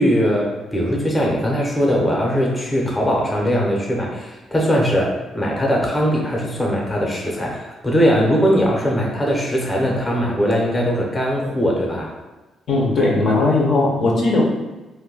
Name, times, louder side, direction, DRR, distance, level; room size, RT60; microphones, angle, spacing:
voice 1, 0.0-12.1, equal, 15° left, -2 dB, 0.6 m, -20 dB
voice 2, 12.7-14.4, left 2 dB, 55° left, -2 dB, 0.6 m, -18 dB
2.3 x 2.1 x 3.7 m, 1.1 s
cardioid pair, 90°, 0 cm